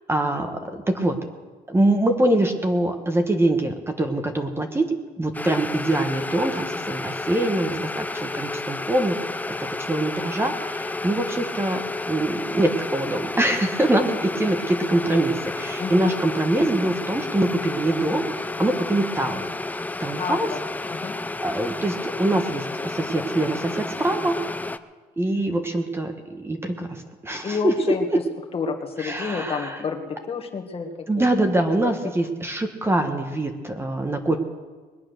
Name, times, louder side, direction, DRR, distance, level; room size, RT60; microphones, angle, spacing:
voice 1, 0.1-1.1 1.7-9.2 9.9-19.5 20.0-20.5 21.1-24.4 25.2-28.2 29.0-29.8 31.1-34.4, right 1 dB, 15° right, 5 dB, 1.3 m, -24 dB
sound 1, 5.3-24.8, left 2 dB, 10° left, 0.5 m, -31 dB
voice 2, 15.8-16.2 20.2-20.6 20.9-21.2 27.4-28.1 28.5-31.5 31.8-31.9, left 5 dB, 35° left, 3 dB, 1.8 m, -30 dB
21.0 x 8.7 x 6.5 m, 1.4 s
cardioid pair, 110°, 17 cm